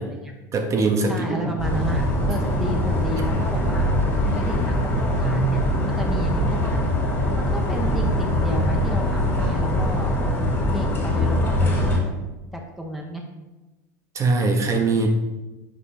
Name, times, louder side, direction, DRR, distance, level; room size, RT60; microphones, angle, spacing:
voice 1, 0.0-0.3 1.1-3.9 4.3-6.8 7.3-10.1 10.7-12.1 12.5-13.2, right 1 dB, ahead, 0 dB, 0.8 m, -32 dB
voice 2, 0.5-1.4 14.1-15.1, right 3 dB, 30° right, 4 dB, 0.9 m, -21 dB
sound 1, 1.6-12.0, left 1 dB, 25° left, 2.1 m, -22 dB
5.3 x 4.5 x 4.2 m, 1.1 s
supercardioid pair, 100°, 10 cm